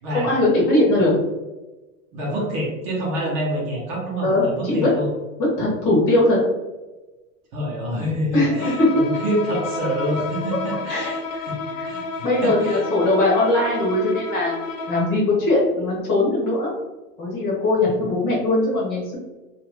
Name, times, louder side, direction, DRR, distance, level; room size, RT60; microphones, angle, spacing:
voice 1, 0.1-1.1 4.2-4.9 5.4-6.4 8.3-8.9 10.9-11.4 11.8-11.9 12.2-14.6 14.9-16.7 17.2-19.2, left 2 dB, 25° left, -5 dB, 0.7 m, -20 dB
voice 2, 2.1-5.1 7.5-11.2 11.5-11.6 11.8-12.8 17.8-17.9, equal, 35° right, -3 dB, 0.8 m, -26 dB
Bowed string instrument, 8.6-15.3, left 3 dB, 65° left, 0.9 m, -31 dB
2.8 x 2.5 x 3.3 m, 1.1 s
supercardioid pair, 170°, 41 cm